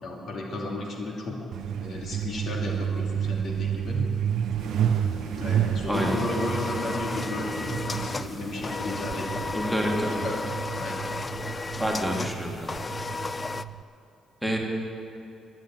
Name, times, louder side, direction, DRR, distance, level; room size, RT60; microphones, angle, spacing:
voice 1, 0.0-1.4 1.8-4.0 5.4-9.3 10.2-11.0, left 2 dB, 60° left, -1 dB, 2.7 m, -34 dB
Truck, 1.5-13.8, right 9 dB, 70° right, 0.4 m, -31 dB
sound 1, 4.6-10.4, left 3 dB, 80° left, 1.5 m, -41 dB
sound 2, 5.9-13.7, left 3 dB, 30° left, 0.4 m, -34 dB
voice 2, 9.5-10.2 11.8-12.7 14.4-14.6, equal, ahead, 0 dB, 2.1 m, -28 dB
12.0 x 10.5 x 9.0 m, 2.8 s
cardioid pair, 90°, 0 cm